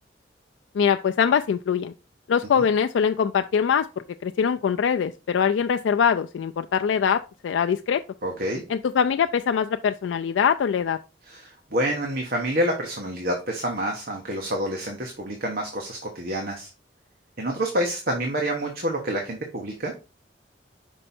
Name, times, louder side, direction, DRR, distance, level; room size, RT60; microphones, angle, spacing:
voice 1, 0.7-1.9 2.3-3.9 4.2-8.0 8.7-11.0, left 7 dB, 85° left, 0.3 m, -23 dB
voice 2, 8.2-8.6 11.3-16.7 17.4-19.9, right 1 dB, 50° right, 1.2 m, -28 dB
5.4 x 5.4 x 4.2 m
head